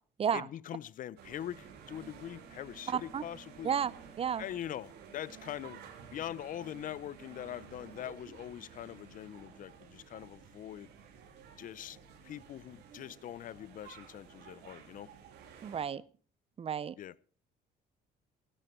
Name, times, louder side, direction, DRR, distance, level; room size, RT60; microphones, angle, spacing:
voice 1, 0.3-3.7 4.4-5.8 6.1-10.9 11.6-12.0 12.2-15.1 17.0-17.2, left 11 dB, 50° left, 0.7 m, -43 dB
sound 1, 1.2-15.9, right 7 dB, 80° right, 3.3 m, -53 dB
voice 2, 2.9-3.2 3.6-3.9 4.2-4.4 15.6-16.0 16.6-16.9, right 8 dB, 35° right, 0.7 m, -32 dB
16.0 x 12.5 x 4.5 m
cardioid pair, 110°, 17 cm